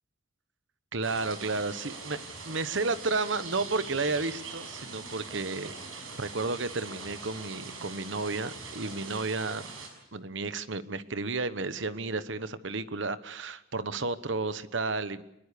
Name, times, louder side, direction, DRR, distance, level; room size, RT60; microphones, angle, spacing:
voice 1, 0.9-2.2 2.4-5.7 6.1-9.7 10.1-15.2, right 3 dB, 65° right, 13 dB, 1.1 m, -32 dB
sound 1, 1.0-9.9, right 4 dB, 85° right, 6.5 m, -42 dB
24.0 x 21.5 x 6.8 m, 0.82 s
head